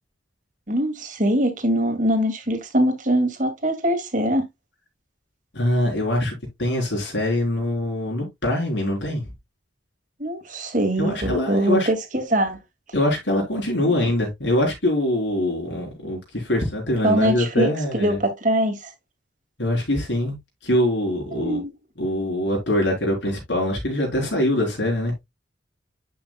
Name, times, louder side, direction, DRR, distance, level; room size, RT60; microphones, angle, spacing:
voice 1, 0.7-4.5 10.2-12.6 13.8-13.9 17.0-18.9 21.3-21.7, right 1 dB, 45° right, 2.2 m, -23 dB
voice 2, 5.5-9.2 11.0-11.9 12.9-18.2 19.6-20.4 20.6-21.6 22.0-25.1, left 1 dB, 75° left, 4.1 m, -23 dB
10.5 x 6.3 x 2.3 m
head